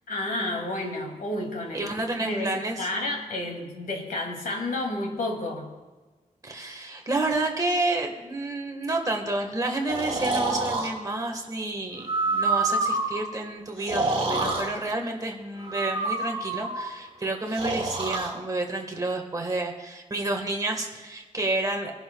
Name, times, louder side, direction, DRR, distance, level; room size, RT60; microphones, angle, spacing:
voice 1, 0.1-1.9 2.2-5.7, left 1 dB, 80° left, 0 dB, 2.5 m, -31 dB
voice 2, 1.7-2.9 6.4-21.9, right 2 dB, 25° right, 2 dB, 1.4 m, -30 dB
Breathing, 9.9-10.9 12.0-13.2 13.8-14.7 15.6-16.9 17.5-18.3, right 3 dB, 45° right, 4.8 m, -27 dB
25.0 x 11.0 x 2.3 m, 1.3 s
wide cardioid pair, 175°, 14 cm